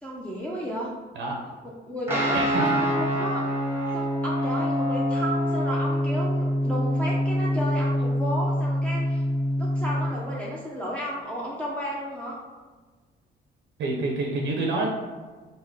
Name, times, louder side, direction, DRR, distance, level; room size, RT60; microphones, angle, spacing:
voice 1, 0.0-0.9 1.6-3.5 3.9-9.2 9.6-12.4, equal, 5° left, -6 dB, 0.5 m, -33 dB
Guitar, 2.1-10.1, equal, 10° right, 0.8 m, -25 dB
voice 2, 2.3-2.7 13.8-15.0, right 2 dB, 70° right, 0 dB, 0.5 m, -27 dB
3.6 x 2.0 x 3.5 m, 1.4 s
cardioid pair, 90°, 20 cm